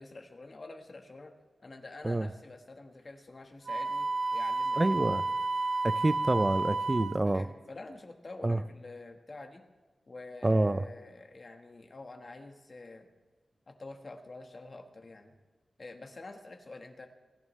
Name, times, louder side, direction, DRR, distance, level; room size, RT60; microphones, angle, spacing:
voice 1, 0.0-1.3 1.6-5.1 7.2-9.6 10.1-13.1 13.7-15.3 15.8-17.1, left 2 dB, 45° left, 4 dB, 1.4 m, -47 dB
Wind instrument woodwind instrument, 3.7-7.2, right 3 dB, 70° right, 0.6 m, -31 dB
voice 2, 4.8-5.2 5.8-7.5 8.4-8.6 10.4-10.8, right 2 dB, 25° right, 13 dB, 0.4 m, -27 dB
22.5 x 11.0 x 3.2 m, 1.3 s
wide cardioid pair, 105°, 0 cm